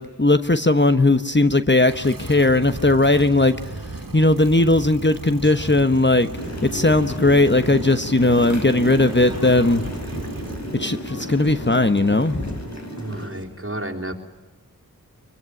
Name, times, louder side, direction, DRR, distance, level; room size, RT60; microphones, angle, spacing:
voice 1, 0.0-3.5 4.1-6.3 6.7-9.9 10.7-12.6, left 2 dB, 35° left, 9 dB, 1.2 m, -18 dB
sound 1, 1.9-10.8, right 2 dB, 80° right, 2.2 m, -36 dB
Human voice / Acoustic guitar, 5.4-13.4, equal, 15° right, 6.6 m, -41 dB
sound 2, 6.3-13.3, equal, 55° left, 3.7 m, -33 dB
voice 2, 13.0-14.1, right 1 dB, 40° right, 3 dB, 3.8 m, -31 dB
24.0 x 22.5 x 9.7 m, 1.2 s
wide cardioid pair, 45°, 34 cm